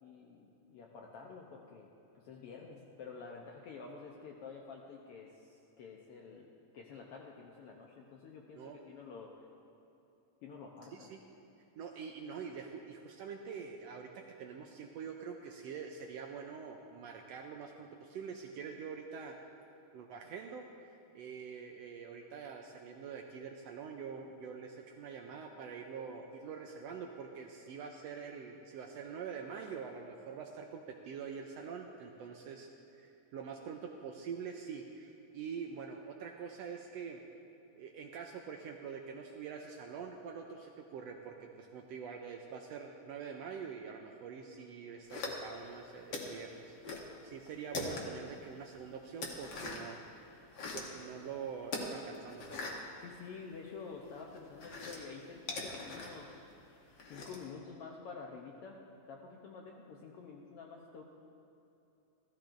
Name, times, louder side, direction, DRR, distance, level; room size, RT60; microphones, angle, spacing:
voice 1, 0.0-1.9 2.1-9.3 10.4-11.1 53.0-56.4 57.0-58.8 59.1-61.0, left 5 dB, 75° left, -1 dB, 1.4 m, -49 dB
voice 2, 10.9-11.2 11.8-14.1 14.4-19.4 19.9-32.7 32.9-37.2 37.7-46.8 47.2-50.0 50.7-52.6, right 6 dB, 80° right, 2 dB, 1.5 m, -45 dB
sound 1, 45.1-45.7 46.1-47.1 47.4-48.3 48.7-50.0 50.4-51.0 51.7-53.7 54.0-57.5, left 3 dB, 55° left, 1.5 m, -42 dB
16.0 x 13.5 x 2.6 m, 2.9 s
omnidirectional pair, 3.4 m